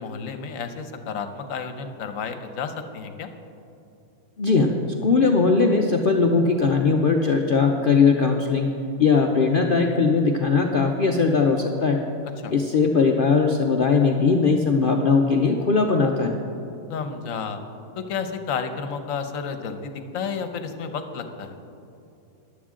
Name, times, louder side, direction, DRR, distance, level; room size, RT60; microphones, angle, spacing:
voice 1, 0.0-3.3 12.4-12.5 16.9-17.6 18.0-21.6, left 6 dB, 65° left, 8 dB, 1.2 m, -31 dB
voice 2, 4.4-4.7 5.0-8.7 9.0-12.0 12.5-16.4, left 4 dB, 50° left, 2 dB, 0.7 m, -19 dB
14.5 x 11.0 x 3.7 m, 2.7 s
omnidirectional pair, 1.5 m